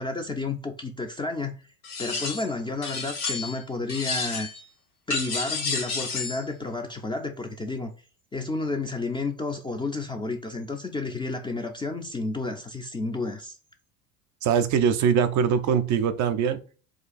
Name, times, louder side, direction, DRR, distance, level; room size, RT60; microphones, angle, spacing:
voice 1, 0.0-1.6 2.0-4.5 5.1-7.9 8.3-13.6, left 3 dB, 10° left, 0.4 m, -31 dB
sound 1, 1.8-2.5 2.8-3.6 3.9-4.6 5.1-6.4, left 4 dB, 85° left, 1.6 m, -30 dB
voice 2, 14.4-16.6, right 7 dB, 40° right, 0.5 m, -22 dB
2.7 x 2.4 x 4.0 m
hypercardioid pair, 75°, 44 cm